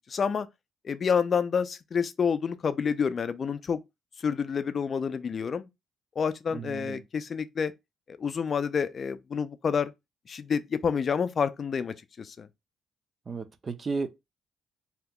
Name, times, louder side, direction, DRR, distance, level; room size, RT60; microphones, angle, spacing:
voice 1, 0.1-0.5 0.8-3.8 4.2-5.7 6.2-7.7 8.1-9.9 10.3-12.5, left 6 dB, 45° left, 0.4 m, -28 dB
voice 2, 6.5-7.0 13.3-14.1, right 4 dB, 35° right, 0.5 m, -33 dB
2.8 x 2.1 x 3.6 m
cardioid pair, 90°, 0 cm